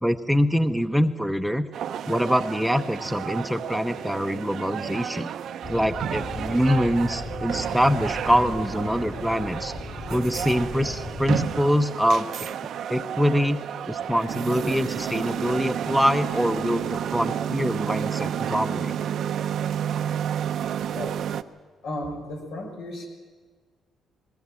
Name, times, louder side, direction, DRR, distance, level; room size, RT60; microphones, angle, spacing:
voice 1, 0.0-1.7 2.1-5.3 5.7-9.7 10.1-12.3 12.9-13.6 13.9-19.0, equal, ahead, 8 dB, 0.8 m, -24 dB
sound 1, 1.7-21.4, right 9 dB, 70° right, 0.7 m, -31 dB
sound 2, 5.6-11.5, left 3 dB, 50° left, 6.1 m, -37 dB
voice 2, 21.8-23.1, left 1 dB, 80° left, 1 dB, 6.0 m, -34 dB
21.0 x 18.0 x 7.6 m, 1.5 s
cardioid pair, 90°, 0 cm